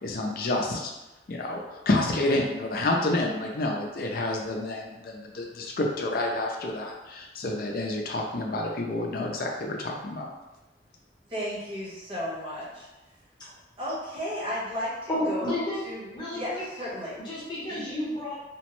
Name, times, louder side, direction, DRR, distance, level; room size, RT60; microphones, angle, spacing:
voice 1, 0.0-0.9 1.3-10.3, left 2 dB, 55° left, 0 dB, 0.4 m, -29 dB
voice 2, 11.3-12.9 13.8-15.6 15.8-17.2 17.7-17.8, equal, 30° right, -9 dB, 1.1 m, -34 dB
voice 3, 15.1-15.8 16.1-16.6 17.2-18.4, left 1 dB, 25° left, -7 dB, 0.9 m, -31 dB
2.9 x 2.1 x 3.0 m, 1.0 s
head